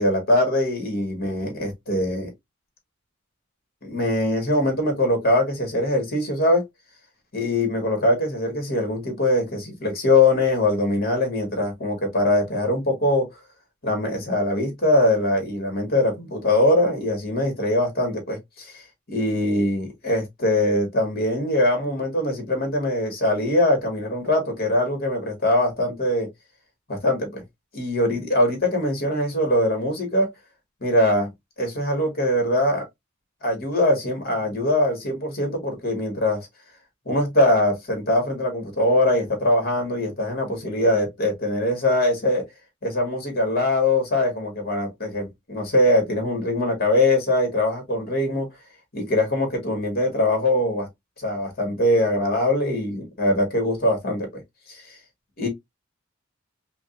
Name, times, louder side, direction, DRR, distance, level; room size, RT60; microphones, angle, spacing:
voice 1, 0.0-2.3 3.8-6.6 7.3-13.3 13.8-18.8 19.1-26.3 26.9-27.4 27.7-30.3 30.8-31.3 31.6-32.8 33.4-36.5 37.1-42.4 42.8-48.5 48.9-50.9 51.2-54.4 54.7-55.0 55.4-55.5, left 1 dB, 50° left, 1.9 m, -22 dB
5.1 x 2.5 x 2.6 m
head